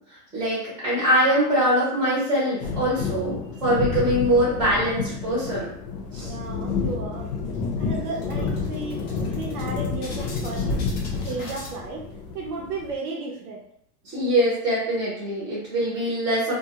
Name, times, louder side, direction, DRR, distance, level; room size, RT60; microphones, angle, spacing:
voice 1, 0.3-5.7 6.1-6.3 14.0-16.5, equal, 10° right, -8 dB, 0.6 m, -23 dB
sound 1, 2.6-13.0, left 4 dB, 85° left, 0.8 m, -29 dB
voice 2, 6.2-7.3 7.8-10.8 11.2-12.1 12.3-13.6, right 3 dB, 70° right, -1 dB, 0.7 m, -34 dB
sound 2, 6.4-7.2 7.5-7.7 8.0-11.7, left 3 dB, 35° left, 0.4 m, -39 dB
2.5 x 2.3 x 2.8 m, 0.70 s
supercardioid pair, 165°, 47 cm